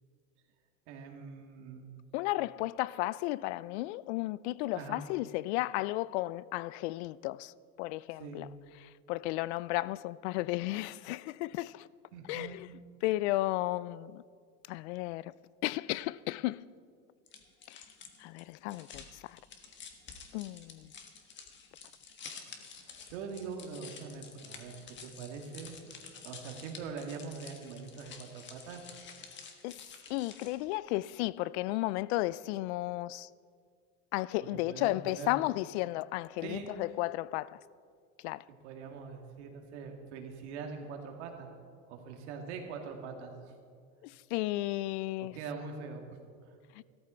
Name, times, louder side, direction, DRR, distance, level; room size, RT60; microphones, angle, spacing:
voice 1, 0.9-1.9 4.7-5.0 8.2-8.5 12.1-12.6 22.8-25.8 26.2-28.8 34.4-35.4 36.4-36.7 38.6-41.5 41.9-43.6 45.2-46.0 46.5-46.6, right 5 dB, 80° right, 2.3 m, -43 dB
voice 2, 2.1-8.5 9.1-11.9 12.3-12.7 13.0-14.2 14.7-15.3 15.6-16.6 17.7-17.8 18.2-19.4 20.3-20.9 29.6-29.8 30.1-33.3 34.1-37.6 38.2-38.4 44.0-45.4, left 18 dB, 75° left, 0.5 m, -34 dB
sound 1, 17.3-30.7, left 6 dB, 35° left, 1.5 m, -50 dB
14.5 x 13.0 x 4.4 m
supercardioid pair, 125°, 34 cm